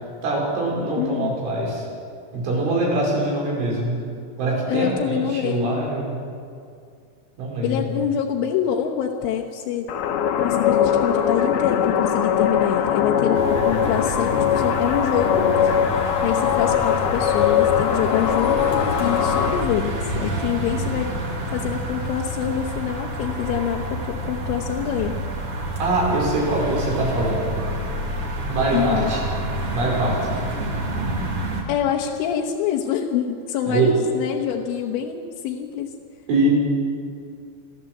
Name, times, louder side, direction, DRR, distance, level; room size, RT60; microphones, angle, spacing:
voice 1, 0.2-1.8 2.3-4.0 4.4-6.2 7.4-7.8 25.8-27.5 28.5-29.2 29.7-30.4 33.7-33.9 36.3-36.5, right 2 dB, 75° right, -3 dB, 7.4 m, -23 dB
voice 2, 0.9-1.4 4.7-5.9 7.6-9.9 10.4-15.8 16.2-21.1 21.5-25.2 28.7-29.1 31.7-36.0, left 9 dB, 85° left, 0 dB, 3.6 m, -26 dB
sound 1, 9.9-19.7, left 8 dB, 65° left, 2.7 m, -21 dB
sound 2, 13.3-31.6, right 1 dB, 40° right, 2.6 m, -28 dB
29.5 x 13.0 x 7.8 m, 2.3 s
omnidirectional pair, 5.5 m